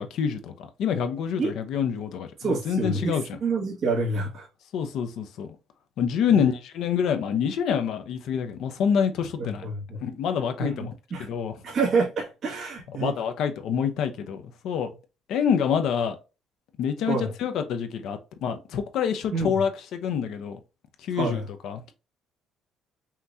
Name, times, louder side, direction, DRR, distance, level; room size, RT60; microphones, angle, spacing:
voice 1, 0.0-3.2 4.7-5.5 6.0-9.6 10.0-10.9 11.2-11.5 13.0-14.9 15.3-16.2 16.8-20.6 21.0-21.9, left 7 dB, 60° left, 0.8 m, -27 dB
voice 2, 2.4-4.5 6.3-6.5 9.4-10.0 10.6-11.3 11.6-13.2 17.1-17.3 19.3-19.6 21.1-21.5, right 3 dB, 35° right, 2.0 m, -28 dB
5.7 x 3.1 x 2.8 m
cardioid pair, 170°, 0 cm